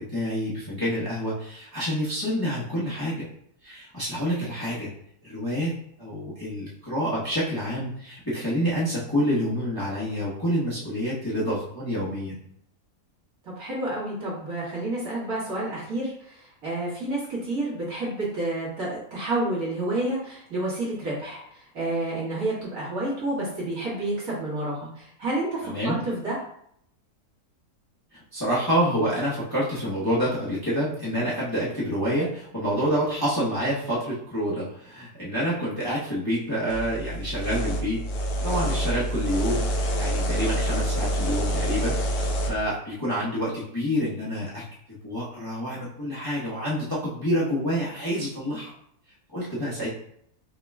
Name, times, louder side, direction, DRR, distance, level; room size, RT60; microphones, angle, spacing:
voice 1, 0.0-3.2 3.6-4.9 5.2-12.4 25.6-26.0 28.1-38.0 38.4-44.6 45.0-48.7 49.3-49.9, equal, 15° left, -8 dB, 1.0 m, -28 dB
voice 2, 13.6-26.4, right 2 dB, 65° right, -8 dB, 2.3 m, -29 dB
sound 1, 36.7-42.5, right 1 dB, 80° left, 1.3 m, -27 dB
5.8 x 3.0 x 2.3 m, 0.69 s
omnidirectional pair, 1.6 m